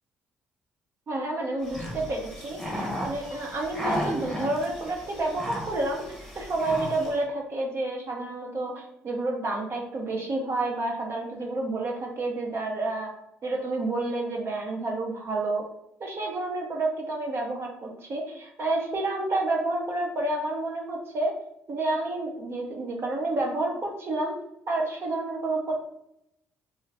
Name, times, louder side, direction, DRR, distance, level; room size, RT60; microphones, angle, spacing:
voice 1, 1.1-6.0 6.3-13.1 13.4-15.6 16.0-21.3 21.7-24.3 24.7-25.7, right 2 dB, 50° right, 0 dB, 0.8 m, -29 dB
sound 1, 1.6-7.2, equal, 5° left, 0.9 m, -35 dB
2.5 x 2.4 x 3.3 m, 0.77 s
supercardioid pair, 75°, 6 cm